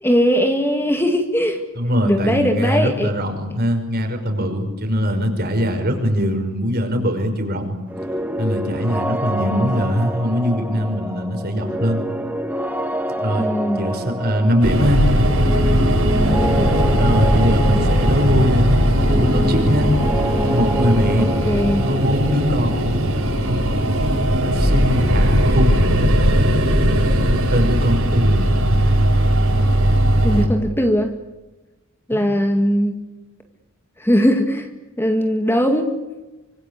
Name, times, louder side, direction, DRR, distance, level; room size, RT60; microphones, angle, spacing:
voice 1, 0.0-1.6 2.0-3.1 9.5-9.7 13.3-13.9 16.1-16.7 21.2-21.9 30.2-31.1 32.1-33.0 34.0-34.7 35.0-35.9, equal, 10° left, 5 dB, 2.1 m, -19 dB
voice 2, 1.7-7.8 8.4-12.0 13.2-13.5 13.8-15.0 17.0-19.9 20.5-21.4 21.8-22.8 24.4-25.8 27.5-28.6 32.1-32.3, equal, 50° right, 5 dB, 5.4 m, -21 dB
sound 1, 7.9-25.5, equal, 10° right, 1.6 m, -27 dB
sound 2, 14.6-30.5, equal, 75° right, 7.7 m, -18 dB
26.0 x 25.5 x 8.3 m, 1.1 s
head